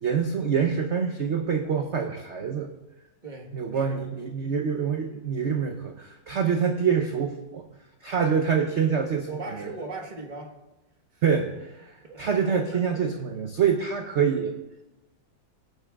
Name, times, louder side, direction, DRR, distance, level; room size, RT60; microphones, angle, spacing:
voice 1, 0.0-2.7 3.5-7.6 8.0-9.7 11.2-14.6, right 6 dB, 80° right, 4 dB, 0.6 m, -26 dB
voice 2, 3.2-4.0 8.3-8.4 9.3-10.5 11.1-11.2 12.0-13.0, right 2 dB, 30° right, 2 dB, 1.1 m, -39 dB
18.5 x 9.2 x 2.3 m, 1.0 s
omnidirectional pair, 2.2 m